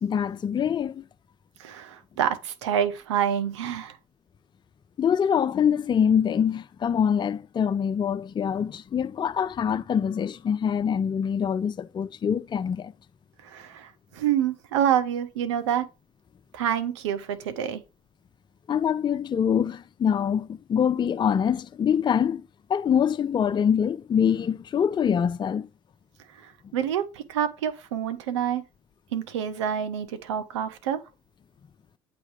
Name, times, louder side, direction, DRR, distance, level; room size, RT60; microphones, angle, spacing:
voice 1, 0.0-1.0 5.0-12.9 18.7-22.4 22.7-25.7, left 8 dB, 30° left, 0.5 m, -24 dB
voice 2, 1.6-4.0 13.4-15.9 16.5-17.8 26.4-28.6 29.1-31.0, right 9 dB, 85° right, 0.9 m, -27 dB
8.4 x 3.2 x 4.8 m
hypercardioid pair, 75°, 15 cm